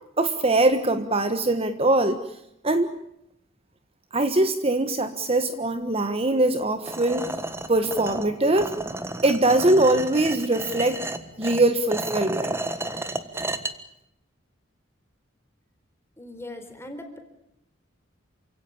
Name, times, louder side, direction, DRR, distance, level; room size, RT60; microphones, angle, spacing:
voice 1, 0.2-2.2 2.6-2.9 4.1-7.3 7.7-8.7 9.2-11.1 11.4-12.6, right 2 dB, 30° right, 9 dB, 1.4 m, -22 dB
sound 1, 6.9-13.7, right 2 dB, 15° right, 1.5 m, -32 dB
voice 2, 16.2-17.2, left 1 dB, 15° left, 6 dB, 4.2 m, -39 dB
28.5 x 17.0 x 8.7 m, 0.80 s
head